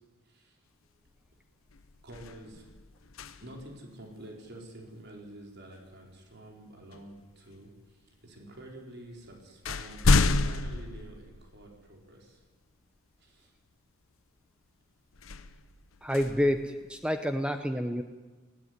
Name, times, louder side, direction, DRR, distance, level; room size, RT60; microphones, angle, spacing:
sound 1, 1.1-1.3 1.7-3.8 5.9-6.1 6.9-7.7 8.6-8.7 9.1-11.9 12.4-12.5 15.1-17.3, left 3 dB, 80° left, 0.9 m, -30 dB
voice 1, 2.0-2.6 3.4-12.4 13.2-13.5, right 1 dB, 55° right, 0 dB, 4.7 m, -48 dB
voice 2, 16.0-18.0, equal, 5° right, 7 dB, 0.9 m, -28 dB
20.0 x 17.0 x 9.7 m, 1.3 s
head